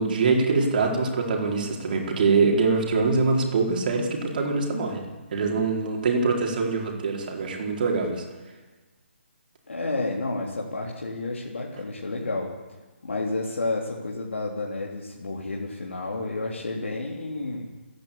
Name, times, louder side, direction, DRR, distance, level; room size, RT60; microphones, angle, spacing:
voice 1, 0.0-8.2, right 4 dB, 45° right, 1 dB, 4.5 m, -24 dB
voice 2, 9.7-12.5 13.0-17.6, left 2 dB, 70° left, -2 dB, 3.5 m, -30 dB
28.0 x 10.5 x 8.7 m, 1.2 s
figure-of-eight pair, 150°, 7 cm